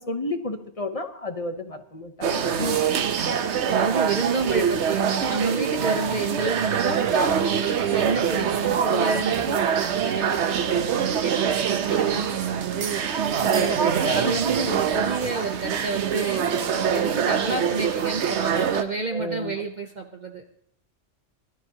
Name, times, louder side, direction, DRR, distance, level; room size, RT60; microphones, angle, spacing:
voice 1, 0.1-2.8 19.1-19.5, left 2 dB, 30° left, 7 dB, 1.0 m, -31 dB
sound 1, 2.2-18.8, right 7 dB, 70° right, 1.1 m, -24 dB
voice 2, 2.9-3.3 3.7-20.5, right 4 dB, 40° right, 3 dB, 0.9 m, -29 dB
21.0 x 12.5 x 2.9 m, 0.67 s
omnidirectional pair, 1.2 m